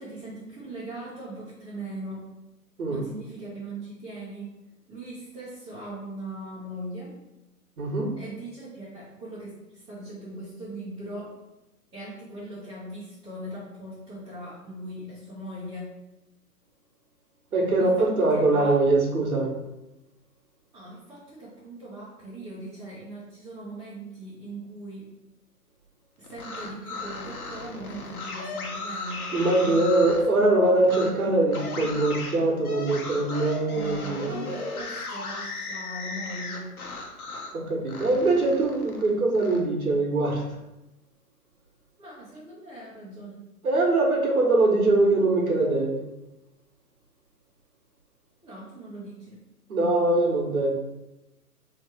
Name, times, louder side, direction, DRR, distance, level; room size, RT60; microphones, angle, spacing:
voice 1, 0.0-2.2 2.9-4.5 4.9-7.1 8.2-11.4 11.9-15.9 17.8-18.7 20.7-25.1 26.2-29.2 29.6-29.8 33.7-36.7 42.0-43.4 48.4-49.4, right 1 dB, 10° right, -12 dB, 0.7 m, -40 dB
voice 2, 7.8-8.1 17.5-19.6 29.3-34.3 37.5-40.4 43.6-46.0 49.7-50.8, right 2 dB, 65° right, 0 dB, 1.4 m, -22 dB
sound 1, 26.2-30.3 30.8-31.1 31.5-37.6 37.9-39.6, left 3 dB, 65° left, 1.0 m, -36 dB
3.2 x 3.2 x 4.5 m, 0.94 s
figure-of-eight pair, 125°, 46 cm